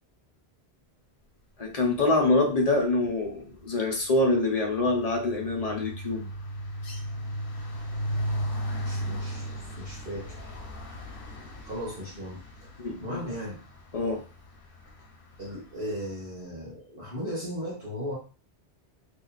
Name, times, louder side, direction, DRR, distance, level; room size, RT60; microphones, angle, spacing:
voice 1, 1.6-6.2 12.8-13.2 13.9-14.2, left 2 dB, 40° left, 1 dB, 1.0 m, -25 dB
sound 1, 2.2-2.5 2.8-15.9, equal, 60° left, 1.1 m, -37 dB
voice 2, 8.7-10.5 11.6-12.7 13.0-13.6 15.4-18.2, equal, 60° right, -7 dB, 1.4 m, -37 dB
3.3 x 2.8 x 3.9 m, 0.36 s
omnidirectional pair, 1.1 m